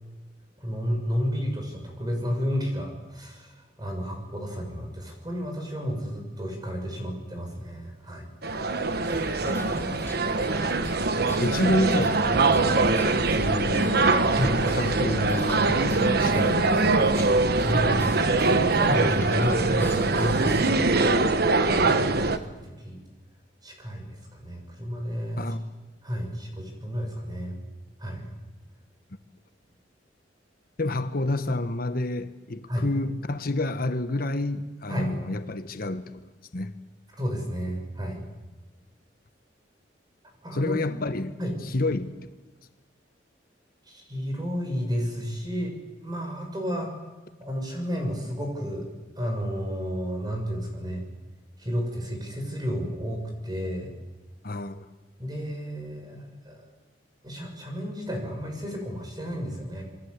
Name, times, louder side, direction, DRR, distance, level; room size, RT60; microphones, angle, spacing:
voice 1, 0.6-8.3 14.3-14.6 17.3-21.1 21.4-23.0 23.6-25.5 26.0-27.6 28.0-28.3 32.7-32.9 34.9-35.1 37.2-38.2 40.4-41.0 41.4-41.5 43.9-45.8 46.0-46.9 47.4-48.9 49.1-51.1 51.6-54.0 55.2-56.6 57.2-59.8, equal, 25° right, 6.9 m, -32 dB
sound 1, 8.4-22.4, right 3 dB, 60° right, 1.4 m, -23 dB
sound 2, 8.9-20.7, left 1 dB, 15° left, 1.8 m, -39 dB
voice 2, 9.5-10.0 11.4-16.9 25.4-25.6 30.8-36.7 40.5-41.3 41.6-42.3 54.4-54.8, left 2 dB, 55° left, 1.2 m, -29 dB
27.5 x 23.0 x 8.2 m
head